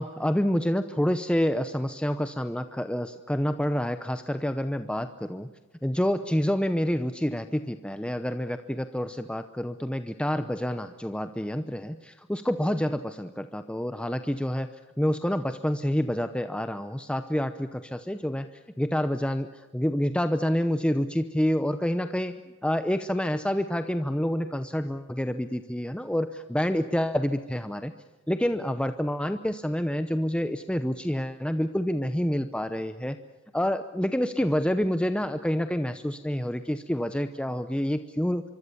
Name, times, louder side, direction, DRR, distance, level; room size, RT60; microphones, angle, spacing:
voice 1, 0.0-5.5 5.8-14.7 15.0-18.5 18.8-19.5 19.7-27.9 28.3-33.2 33.5-38.4, equal, 5° left, 9 dB, 0.8 m, -28 dB
25.5 x 24.5 x 7.1 m, 1.2 s
head